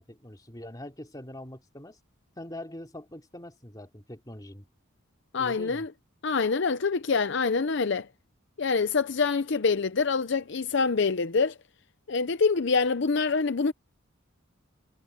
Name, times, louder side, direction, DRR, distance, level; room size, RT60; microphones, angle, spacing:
voice 1, 0.0-2.0 2.4-4.7 5.4-5.8, left 1 dB, 20° left, 3.0 m, -43 dB
voice 2, 5.3-5.9 6.2-8.1 8.6-11.5 12.1-13.7, left 4 dB, 60° left, 0.6 m, -25 dB
head